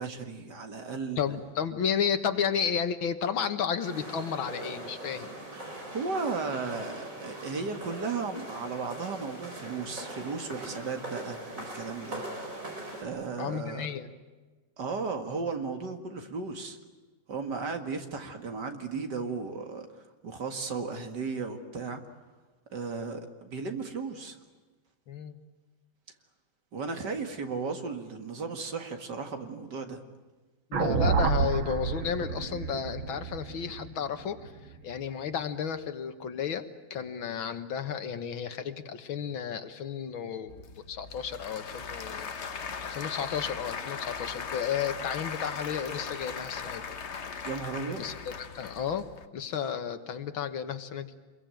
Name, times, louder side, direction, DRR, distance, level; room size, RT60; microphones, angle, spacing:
voice 1, 0.0-1.2 5.5-12.4 13.0-13.9 14.8-16.8 17.3-22.0 22.7-24.4 26.7-30.0 47.5-48.0, right 4 dB, 60° right, 6 dB, 2.6 m, -35 dB
voice 2, 1.2-5.3 13.4-14.1 25.1-25.4 30.7-34.5 34.8-42.3 42.8-46.8 48.0-49.1 49.3-51.1, left 7 dB, 85° left, 9 dB, 2.2 m, -32 dB
sound 1, 3.8-13.0, right 1 dB, 40° right, 5.3 m, -41 dB
sound 2, 30.7-35.0, right 5 dB, 80° right, 2.3 m, -29 dB
Applause / Crowd, 40.5-49.3, left 5 dB, 40° left, 1.1 m, -38 dB
27.0 x 22.5 x 9.1 m, 1.3 s
omnidirectional pair, 2.2 m